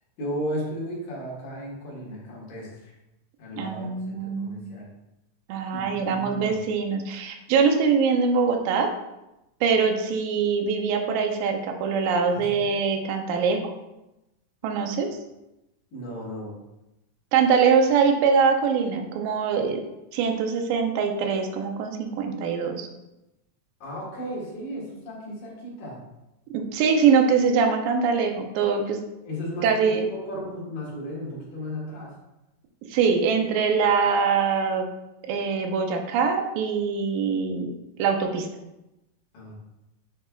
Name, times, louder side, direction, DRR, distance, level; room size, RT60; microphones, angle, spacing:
voice 1, 0.2-2.9 3.4-3.9 4.2-4.9 5.7-6.6 12.3-12.7 15.0-15.1 15.9-16.6 23.8-26.0 29.2-32.2 39.3-39.5, equal, 75° left, -5 dB, 3.4 m, -35 dB
voice 2, 3.6-4.7 5.5-8.9 9.6-13.7 14.6-15.1 17.3-19.8 20.1-22.9 26.5-29.0 29.6-30.1 32.9-34.9 35.3-37.7 38.0-38.5, right 5 dB, 90° right, 4 dB, 2.4 m, -23 dB
9.7 x 4.3 x 2.3 m, 0.94 s
omnidirectional pair, 3.8 m